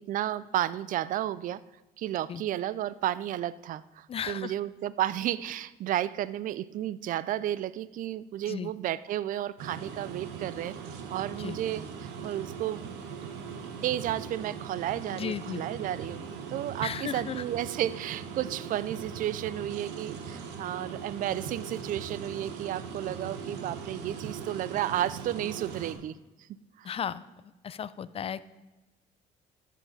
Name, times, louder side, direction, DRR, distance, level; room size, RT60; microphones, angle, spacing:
voice 1, 0.1-1.6 2.0-10.8 11.1-12.9 13.2-13.3 13.8-16.2 16.5-26.5 26.8-26.9, right 12 dB, 55° right, 17 dB, 0.4 m, -32 dB
voice 2, 4.1-4.5 8.5-8.7 11.4-11.6 15.1-15.6 16.8-17.4 26.8-27.2 27.6-28.5, left 8 dB, 35° left, 17 dB, 0.4 m, -35 dB
sound 1, 9.6-25.9, right 6 dB, 90° right, 1.3 m, -40 dB
13.5 x 7.4 x 4.0 m, 1.1 s
cardioid pair, 110°, 17 cm